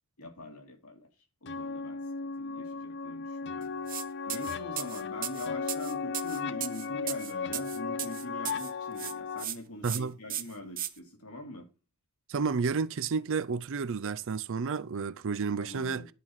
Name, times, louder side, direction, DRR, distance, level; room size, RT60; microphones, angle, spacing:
voice 1, 0.2-1.1 1.4-3.7 4.3-11.7 15.6-16.1, left 1 dB, 85° left, 2.9 m, -43 dB
sound 1, 1.5-9.4, left 5 dB, 55° left, 0.6 m, -36 dB
sound 2, 3.9-4.0 4.3-8.7 9.0-9.6 9.8-10.0 10.3-10.9, right 12 dB, 40° right, 0.9 m, -36 dB
voice 2, 9.8-10.1 12.3-16.0, right 5 dB, 65° right, 0.5 m, -31 dB
11.0 x 4.8 x 5.6 m
head